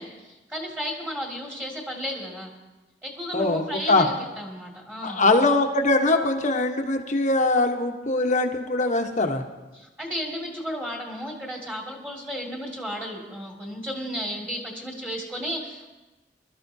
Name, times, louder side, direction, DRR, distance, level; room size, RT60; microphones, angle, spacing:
voice 1, 0.0-2.5 3.0-5.2 9.7-15.9, equal, 10° right, -1 dB, 2.1 m, -33 dB
voice 2, 3.3-4.1 5.0-9.4, left 2 dB, 45° left, 5 dB, 1.0 m, -22 dB
23.0 x 13.0 x 2.7 m, 1.1 s
head